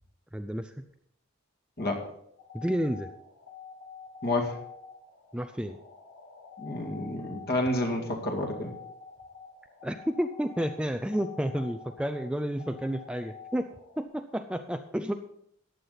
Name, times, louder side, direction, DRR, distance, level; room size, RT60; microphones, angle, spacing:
voice 1, 0.3-0.7 2.5-3.1 5.3-5.8 9.8-13.7 14.0-15.1, equal, 5° right, 7 dB, 0.4 m, -31 dB
voice 2, 1.8-2.1 4.2-4.6 6.6-8.7, left 1 dB, 45° left, 1 dB, 2.3 m, -29 dB
sound 1, 2.4-14.0, left 5 dB, 70° left, 3.4 m, -48 dB
14.5 x 9.5 x 4.1 m, 0.73 s
head